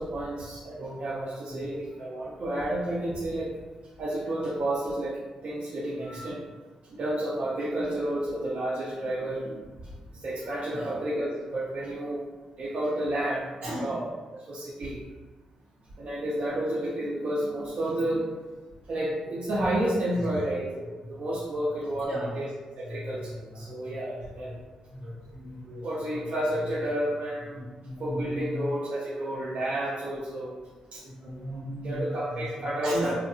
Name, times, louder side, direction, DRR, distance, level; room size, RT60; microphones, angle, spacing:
voice 1, 0.0-3.5 4.0-6.4 6.9-9.7 10.1-12.2 12.6-14.1 14.3-15.0 16.0-18.3 18.9-22.1 22.4-22.5 22.8-24.6 25.8-27.6 28.0-30.6 30.9-31.0 31.8-33.2, right 1 dB, 60° right, -6 dB, 0.5 m, -31 dB
voice 2, 6.0-6.3 10.7-10.9 13.6-13.9 20.1-20.4 21.7-22.4 22.8-24.6 24.9-25.9 26.1-26.3 27.5-28.7 31.0-33.2, equal, 80° right, -8 dB, 1.1 m, -37 dB
2.7 x 2.5 x 2.3 m, 1.3 s
supercardioid pair, 50°, 2 cm